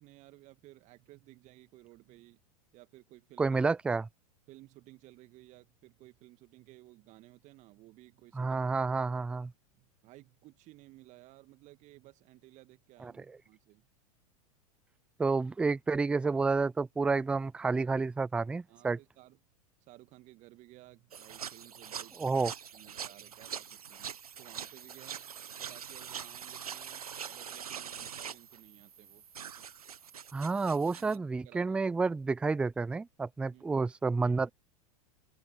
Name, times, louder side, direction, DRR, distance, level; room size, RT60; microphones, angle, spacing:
voice 1, 0.0-2.4 2.7-3.6 4.5-8.6 9.7-13.9 18.7-19.4 19.8-22.4 22.7-25.3 25.6-29.7 30.7-31.8 33.5-33.9, right 18 dB, 40° right, 2.4 m, -57 dB
voice 2, 3.4-4.1 8.4-9.5 13.0-13.1 15.2-19.0 22.2-22.5 30.3-34.5, right 4 dB, 5° right, 0.3 m, -30 dB
sound 1, 21.1-31.2, right 8 dB, 75° right, 1.2 m, -44 dB
open air
figure-of-eight pair, 90°, 19 cm